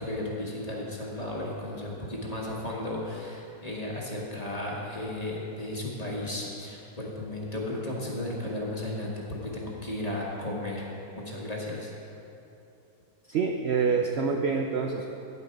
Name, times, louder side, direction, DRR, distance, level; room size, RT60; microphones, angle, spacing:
voice 1, 0.0-10.9 11.1-11.9, left 1 dB, 25° left, -4 dB, 1.5 m, -34 dB
voice 2, 13.3-15.1, right 5 dB, 60° right, 3 dB, 0.7 m, -26 dB
9.9 x 8.3 x 5.2 m, 2.9 s
omnidirectional pair, 1.6 m